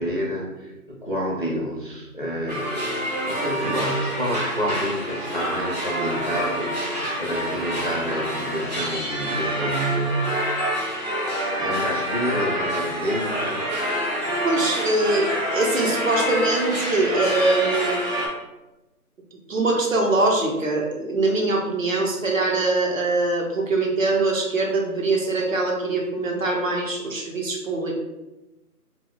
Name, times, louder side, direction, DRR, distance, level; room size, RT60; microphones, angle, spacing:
voice 1, 0.0-10.4 11.6-13.7, equal, 35° left, -4 dB, 0.5 m, -29 dB
sound 1, 2.5-18.3, equal, 25° right, 0.9 m, -27 dB
voice 2, 14.4-18.0 19.5-28.0, right 2 dB, 60° right, 0 dB, 0.8 m, -23 dB
3.0 x 2.2 x 3.7 m, 1.0 s
figure-of-eight pair, 170°, 46 cm